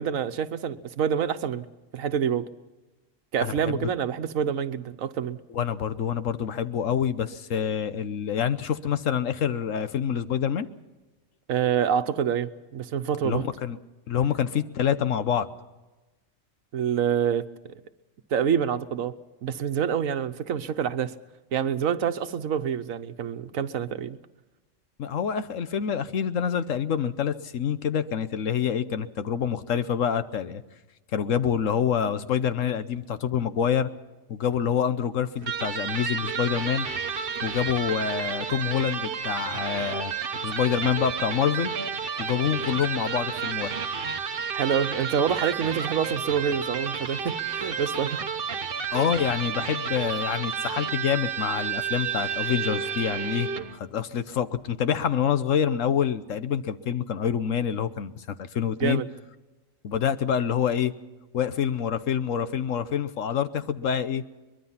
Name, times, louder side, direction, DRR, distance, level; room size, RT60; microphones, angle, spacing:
voice 1, 0.0-1.7 1.9-2.5 3.3-5.4 11.5-13.4 16.7-17.5 18.3-19.1 19.4-21.1 21.5-24.2 44.5-48.2 58.8-59.1, right 8 dB, 90° right, 1.3 m, -27 dB
voice 2, 3.4-3.8 5.5-10.7 13.2-13.8 14.1-15.5 25.0-30.6 31.1-33.9 34.3-36.9 37.4-40.1 40.4-41.7 42.2-43.8 48.9-59.0 59.8-60.9 61.3-64.2, left 8 dB, 75° left, 1.3 m, -26 dB
Electric guitar, 35.4-53.8, right 6 dB, 50° right, 1.0 m, -31 dB
23.0 x 21.5 x 5.8 m
omnidirectional pair, 1.4 m